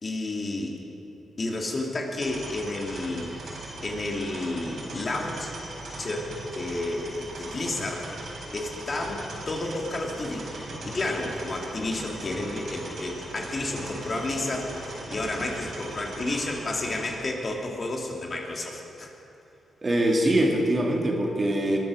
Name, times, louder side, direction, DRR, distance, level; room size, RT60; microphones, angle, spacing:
voice 1, 0.0-0.8 1.4-3.6 3.8-5.5 6.0-8.1 8.5-10.5 10.8-19.1, left 2 dB, 40° left, 0 dB, 2.5 m, -31 dB
sound 1, 2.2-17.2, right 1 dB, 65° right, 4.6 m, -39 dB
voice 2, 19.8-21.8, right 1 dB, 30° right, 0 dB, 2.7 m, -23 dB
21.5 x 9.2 x 6.4 m, 2.7 s
cardioid pair, 70°, 0 cm